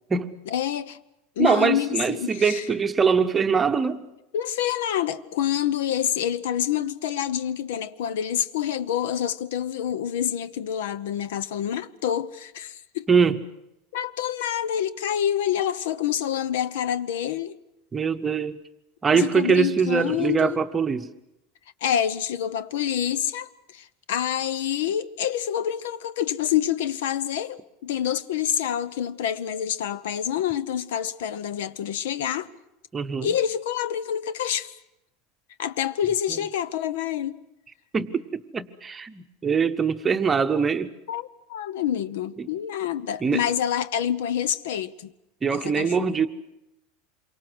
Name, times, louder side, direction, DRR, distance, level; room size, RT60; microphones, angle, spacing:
voice 1, 0.5-1.0 1.4-2.7 4.3-13.1 13.9-17.6 19.1-20.6 21.8-32.5 33.2-34.7 35.6-37.4 41.1-45.1 45.5-46.2, left 10 dB, 85° left, 0.9 m, -27 dB
voice 2, 1.4-4.0 13.1-13.4 17.9-18.6 19.0-21.1 32.9-33.3 36.3-36.4 37.9-40.9 42.4-42.5 43.2-43.4 45.4-46.3, right 6 dB, 15° right, 0.8 m, -23 dB
27.5 x 24.0 x 6.2 m
supercardioid pair, 165°, 0 cm